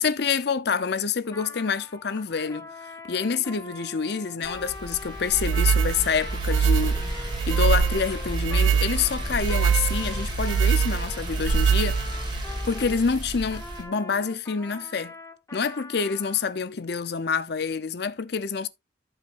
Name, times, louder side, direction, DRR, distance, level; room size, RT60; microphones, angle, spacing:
voice 1, 0.0-2.7 3.1-12.0 12.6-15.1 15.5-18.7, left 6 dB, 55° left, 0.6 m, -27 dB
Trumpet, 1.2-13.0 13.5-16.5, left 1 dB, 15° left, 0.9 m, -42 dB
sound 1, 4.4-13.8, equal, 25° right, 2.4 m, -32 dB
sound 2, 5.3-12.4, right 7 dB, 80° right, 0.3 m, -23 dB
14.5 x 4.9 x 2.5 m
head